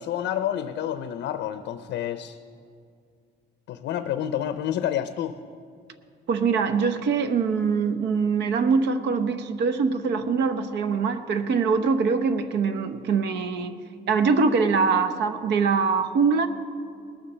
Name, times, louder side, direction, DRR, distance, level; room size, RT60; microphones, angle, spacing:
voice 1, 0.0-2.4 3.7-5.4, left 10 dB, 80° left, 10 dB, 0.6 m, -29 dB
voice 2, 6.3-13.8 14.1-16.5, right 5 dB, 70° right, 9 dB, 0.9 m, -23 dB
19.0 x 7.1 x 6.7 m, 2.3 s
cardioid pair, 150°, 18 cm